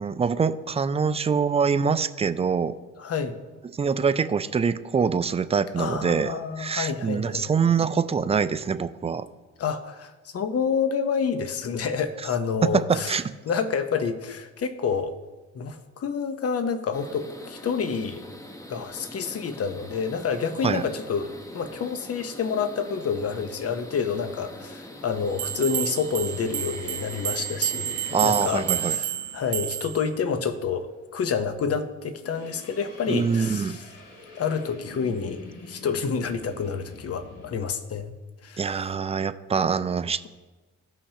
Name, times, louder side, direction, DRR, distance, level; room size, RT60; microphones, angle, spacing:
voice 1, 0.0-2.7 3.7-9.3 12.6-13.2 20.6-20.8 28.1-29.0 33.1-33.8 38.6-40.3, right 6 dB, 20° right, 12 dB, 0.4 m, -24 dB
voice 2, 3.0-3.4 5.8-7.5 9.6-13.2 13.4-15.1 15.5-18.2 18.7-33.8 34.3-38.1 38.4-38.6, left 6 dB, 50° left, 9 dB, 0.9 m, -28 dB
sound 1, 16.9-29.0, left 1 dB, 10° left, 0.9 m, -43 dB
sound 2, 25.4-30.0, right 11 dB, 80° right, 0.7 m, -30 dB
sound 3, 26.1-30.6 32.1-37.6, left 2 dB, 80° left, 2.9 m, -47 dB
15.0 x 5.6 x 2.9 m, 1.2 s
cardioid pair, 90°, 30 cm